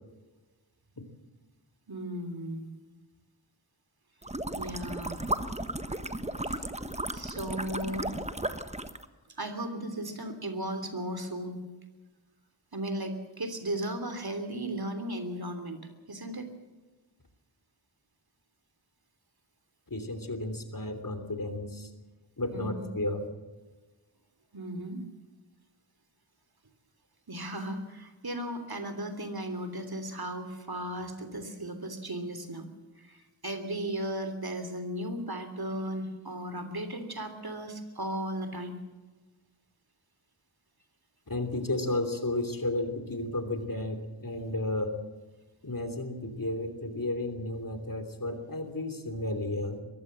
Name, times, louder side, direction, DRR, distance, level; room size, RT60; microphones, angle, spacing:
voice 1, 1.9-2.7 4.5-5.2 7.1-8.2 9.4-11.6 12.7-16.5 22.5-22.9 24.5-25.0 27.3-32.7 33.0-38.8, right 1 dB, 50° right, 8 dB, 3.1 m, -36 dB
sound 1, 4.2-9.1, right 1 dB, 15° right, 1.2 m, -35 dB
voice 2, 19.9-21.9 22.4-23.3 41.3-45.0 45.6-49.8, left 2 dB, 45° left, 8 dB, 3.3 m, -33 dB
22.5 x 15.5 x 7.6 m, 1.2 s
wide cardioid pair, 60°, 47 cm